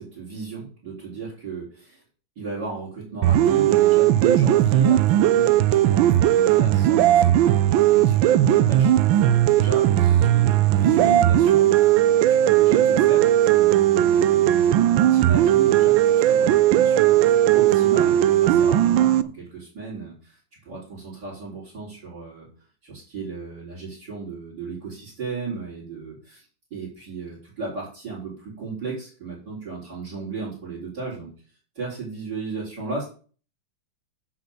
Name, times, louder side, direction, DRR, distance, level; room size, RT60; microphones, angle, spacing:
voice 1, 0.0-2.0 2.4-7.6 7.9-22.5 22.8-26.4 26.7-31.3 31.7-33.1, right 4 dB, 60° right, -6 dB, 5.0 m, -34 dB
sound 1, 3.2-19.2, right 12 dB, 80° right, 1.4 m, -18 dB
8.0 x 6.2 x 8.1 m, 0.40 s
omnidirectional pair, 2.1 m